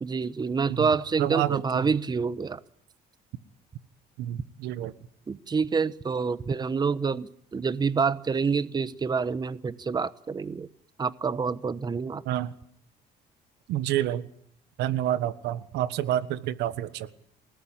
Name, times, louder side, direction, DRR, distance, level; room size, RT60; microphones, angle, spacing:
voice 1, 0.0-2.6 5.3-10.7 11.0-12.2, right 5 dB, 25° right, 15 dB, 1.0 m, -27 dB
voice 2, 1.2-1.6 4.2-4.9 12.2-12.5 13.7-14.2 14.8-17.1, right 12 dB, 85° right, 14 dB, 1.4 m, -28 dB
27.0 x 19.0 x 8.9 m, 0.66 s
cardioid pair, 110°, 17 cm